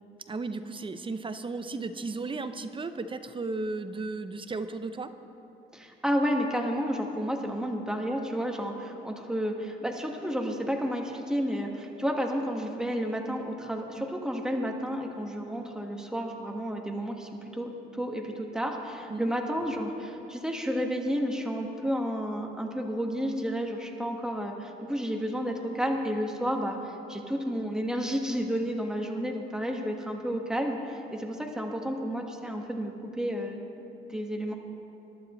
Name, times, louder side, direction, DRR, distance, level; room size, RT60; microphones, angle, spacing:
voice 1, 0.3-5.1 19.1-19.3, right 3 dB, 25° right, 10 dB, 0.7 m, -35 dB
voice 2, 5.7-33.7 34.1-34.5, equal, 5° right, 1 dB, 1.6 m, -31 dB
22.0 x 12.0 x 3.2 m, 2.9 s
cardioid pair, 90°, 20 cm